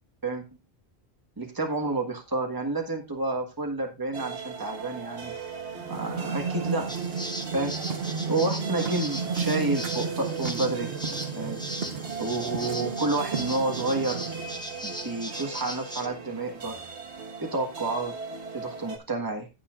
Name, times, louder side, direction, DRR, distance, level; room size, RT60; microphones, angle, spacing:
voice 1, 1.4-5.3 5.9-6.9 7.5-7.8 8.3-10.9 11.4-11.6 12.2-14.2 14.8-16.8 17.4-18.2 18.5-19.5, right 2 dB, 20° right, 3 dB, 1.5 m, -29 dB
sound 1, 4.1-19.0, right 5 dB, 85° right, 1.8 m, -39 dB
sound 2, 5.7-14.7, right 5 dB, 65° right, 1.1 m, -33 dB
sound 3, 6.9-16.1, equal, 5° left, 1.1 m, -39 dB
15.5 x 7.1 x 2.5 m, 0.26 s
omnidirectional pair, 1.1 m